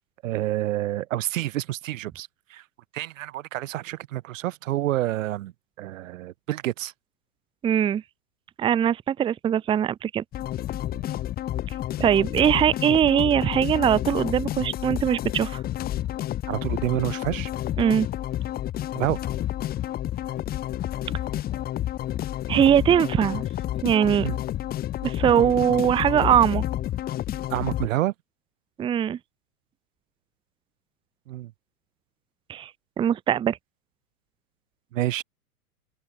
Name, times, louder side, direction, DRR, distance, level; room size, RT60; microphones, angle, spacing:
voice 1, 0.2-2.6 2.9-5.5 5.8-6.9 16.5-17.5 18.9-19.2 24.2-24.4 27.5-28.1 31.3-31.5 34.9-35.2, right 15 dB, 60° right, 0.8 m, -28 dB
voice 2, 7.6-8.0 8.6-10.2 12.0-15.6 17.8-18.1 22.5-23.4 23.8-24.3 25.0-26.6 28.8-29.2 32.5-32.7 33.0-33.6, right 9 dB, 10° right, 0.6 m, -21 dB
sound 1, 10.3-27.9, left 13 dB, 20° left, 0.9 m, -30 dB
open air
hypercardioid pair, 110°, 45 cm